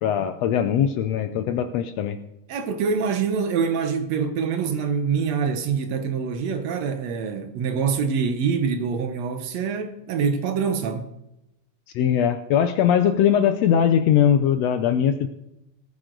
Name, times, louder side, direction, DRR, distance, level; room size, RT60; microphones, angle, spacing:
voice 1, 0.0-2.2 11.9-15.3, left 9 dB, 75° left, 1.6 m, -20 dB
voice 2, 2.5-11.1, right 6 dB, 70° right, 1.8 m, -25 dB
18.5 x 9.3 x 3.8 m
omnidirectional pair, 3.5 m